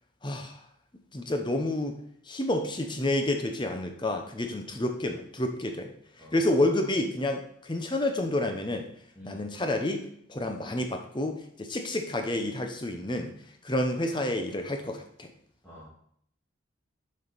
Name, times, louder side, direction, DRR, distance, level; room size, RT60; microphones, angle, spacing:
voice 1, 0.2-0.6 1.1-2.0 2.3-5.9 6.3-8.9 9.2-10.0 10.3-13.3 13.6-15.3, left 1 dB, 20° left, 5 dB, 0.7 m, -29 dB
voice 2, 6.2-6.4 9.2-9.4 15.6-15.9, equal, 5° left, -11 dB, 2.0 m, -48 dB
7.2 x 5.3 x 4.0 m, 0.68 s
head